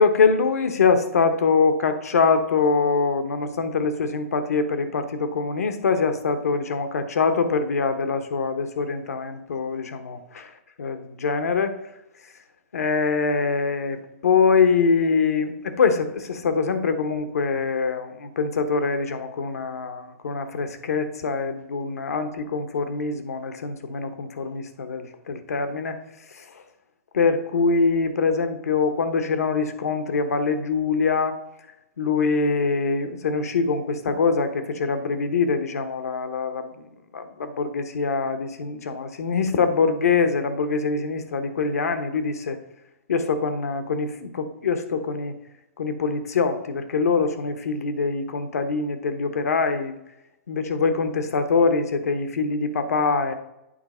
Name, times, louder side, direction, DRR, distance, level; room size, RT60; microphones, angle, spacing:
voice 1, 0.0-10.5 10.8-11.8 12.7-26.0 27.1-31.4 32.0-36.8 37.1-42.6 43.1-45.3 45.8-49.9 50.5-53.3, left 4 dB, 80° left, 9 dB, 1.0 m, -24 dB
8.8 x 4.6 x 4.3 m, 0.87 s
hypercardioid pair, 135°, 8 cm